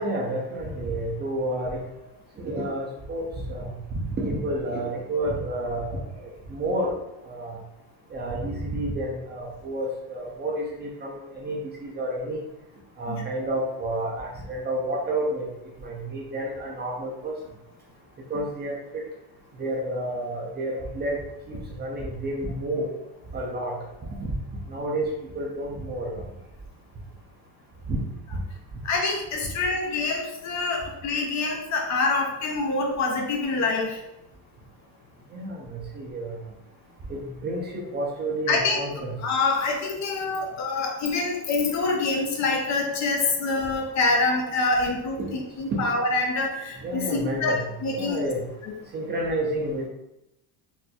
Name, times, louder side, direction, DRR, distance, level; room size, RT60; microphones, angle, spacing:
voice 1, 0.0-1.8 2.4-3.7 4.2-6.9 7.3-7.6 8.1-12.4 13.0-15.5 15.8-17.3 18.3-19.0 19.6-21.2 21.5-22.9 23.3-23.8 24.2-24.3 24.7-25.1 25.3-26.2 27.9-28.0 35.3-36.4 37.1-39.1 45.2-45.3 45.7-45.8 46.8-47.7 47.9-48.4 48.9-49.9, right 1 dB, 25° right, -2 dB, 0.4 m, -30 dB
voice 2, 28.8-34.0 38.5-38.8 39.2-47.5 47.8-48.2 48.6-48.7, left 3 dB, 40° left, 2 dB, 0.5 m, -26 dB
4.2 x 2.6 x 2.2 m, 0.86 s
cardioid pair, 150°, 44 cm